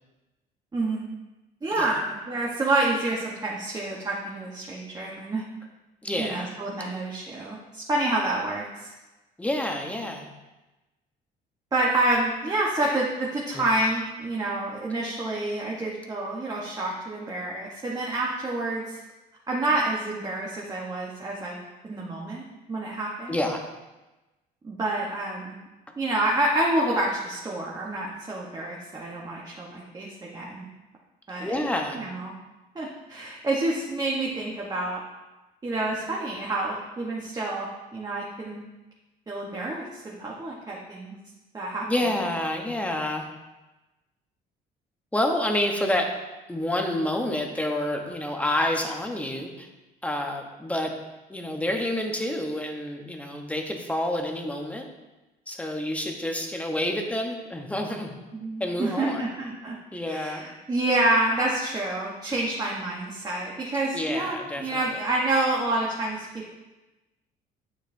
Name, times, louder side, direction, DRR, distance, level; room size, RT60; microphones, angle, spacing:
voice 1, 0.7-1.1 1.6-5.4 6.2-8.9 11.7-19.0 19.5-21.6 21.8-23.4 24.6-25.5 26.0-30.6 31.3-31.7 31.9-32.3 32.7-35.0 35.6-38.7 39.3-41.1 41.5-42.1 58.3-59.8 60.1-66.5, right 2 dB, 25° right, -4 dB, 1.1 m, -28 dB
voice 2, 6.0-6.5 9.4-10.3 13.5-13.6 23.3-23.6 31.4-32.0 41.9-43.3 45.1-46.1 46.5-49.7 50.0-50.9 51.3-54.9 55.5-58.1 58.6-59.3 59.9-60.4 63.9-64.8, left 1 dB, 10° left, 2 dB, 1.0 m, -28 dB
9.3 x 6.4 x 2.7 m, 1.1 s
cardioid pair, 110°, 17 cm